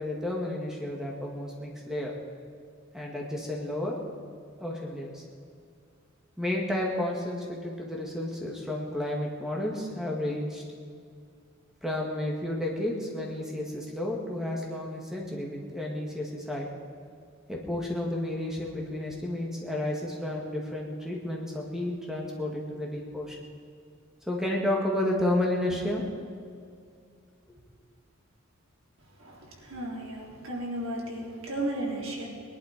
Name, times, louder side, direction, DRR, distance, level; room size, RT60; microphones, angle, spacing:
voice 1, 0.0-2.1 2.9-4.0 4.6-5.2 6.4-10.6 11.8-16.7 17.5-23.4 24.3-26.1, left 1 dB, 5° right, -2 dB, 2.1 m, -31 dB
voice 2, 29.2-32.3, right 1 dB, 90° right, -3 dB, 3.9 m, -34 dB
20.5 x 11.5 x 5.2 m, 2.2 s
head